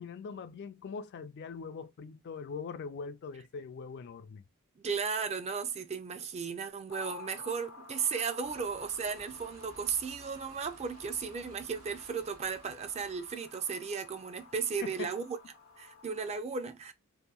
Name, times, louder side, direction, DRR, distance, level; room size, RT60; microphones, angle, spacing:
voice 1, 0.0-4.4 14.8-15.1, left 5 dB, 55° left, 0.3 m, -42 dB
voice 2, 4.8-15.4 15.8-16.9, right 6 dB, 30° right, 0.4 m, -35 dB
sound 1, 6.9-16.4, left 5 dB, 75° left, 0.8 m, -53 dB
sound 2, 8.4-13.4, right 2 dB, 85° right, 0.9 m, -56 dB
2.8 x 2.5 x 2.3 m
head